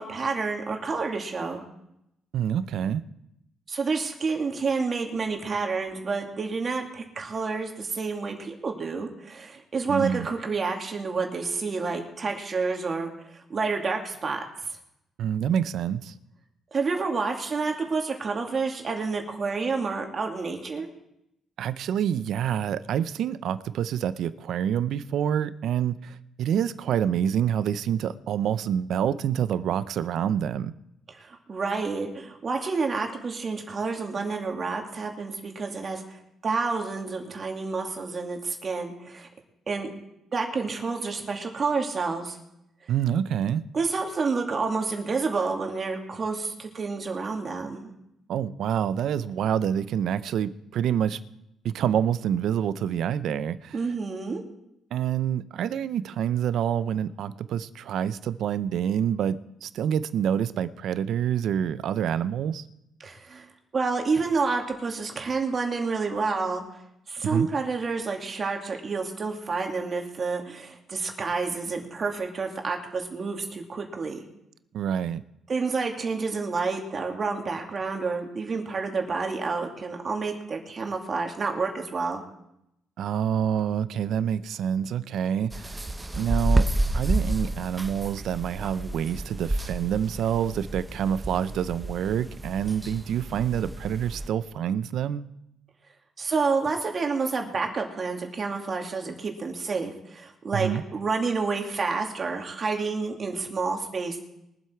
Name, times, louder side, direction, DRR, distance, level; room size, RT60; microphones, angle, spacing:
voice 1, 0.0-1.6 3.7-14.8 16.7-20.9 31.2-39.3 39.7-39.9 40.3-42.4 43.7-47.9 53.7-54.4 63.0-63.5 63.7-66.6 67.1-74.2 75.5-82.2 96.2-104.2, right 4 dB, 40° right, 2.5 m, -29 dB
voice 2, 2.3-3.0 9.9-10.3 15.2-16.1 21.6-30.7 42.9-43.6 48.3-51.2 51.6-53.8 54.9-62.6 67.2-67.5 74.7-75.2 83.0-85.9 86.1-95.3 100.5-100.8, right 9 dB, 75° right, 0.6 m, -27 dB
sound 1, 85.5-94.3, right 1 dB, 15° right, 1.1 m, -30 dB
22.5 x 7.9 x 4.6 m
cardioid pair, 90°, 0 cm